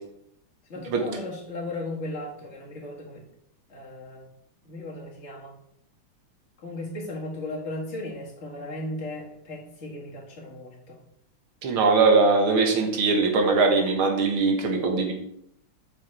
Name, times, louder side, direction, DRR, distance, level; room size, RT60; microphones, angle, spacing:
voice 1, 0.7-3.2 3.7-4.3 4.6-5.6 6.6-11.0, left 1 dB, 30° left, -3 dB, 2.1 m, -36 dB
voice 2, 11.6-15.1, right 4 dB, 70° right, 3 dB, 2.2 m, -21 dB
7.7 x 5.8 x 4.3 m, 0.73 s
omnidirectional pair, 2.4 m